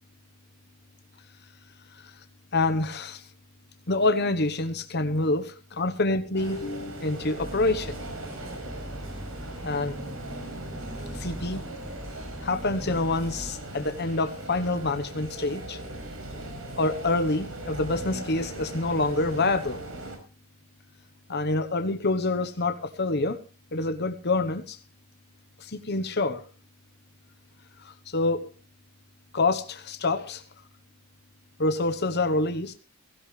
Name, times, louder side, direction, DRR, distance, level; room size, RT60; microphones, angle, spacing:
voice 1, 2.5-3.3 3.9-8.0 9.6-10.0 11.1-11.6 12.4-15.8 16.8-19.8 21.3-23.4 23.7-24.8 25.6-26.4 27.8-28.5 29.3-30.4 31.6-32.7, left 2 dB, 50° left, 8 dB, 1.1 m, -27 dB
Medellin Metro Outside Walla Stereo, 6.3-20.2, right 1 dB, 70° right, 5.0 m, -39 dB
sound 1, 7.4-13.5, equal, 5° left, 0.9 m, -41 dB
17.0 x 15.5 x 3.3 m, 0.35 s
head